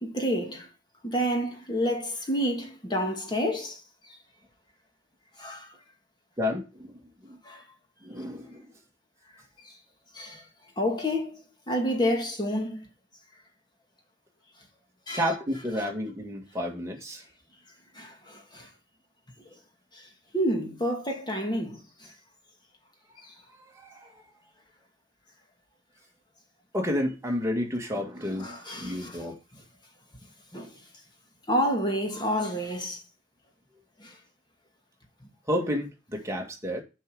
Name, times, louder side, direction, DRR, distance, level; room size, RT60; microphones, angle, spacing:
voice 1, 0.0-0.7 1.0-3.8 5.4-5.7 7.4-7.6 9.6-9.7 10.1-10.4 10.8-11.4 11.7-12.9 15.1-15.2 17.9-18.7 19.9-20.0 20.3-22.1 23.2-23.3 28.4-29.2 30.5-30.8 31.5-33.0 34.0-34.1, equal, 25° left, 2.1 m, -29 dB
voice 2, 6.4-7.4 8.0-8.7 15.1-17.2 23.7-24.2 26.7-29.4 35.5-36.8, left 1 dB, 15° right, 2.0 m, -31 dB
7.3 x 5.6 x 6.3 m
head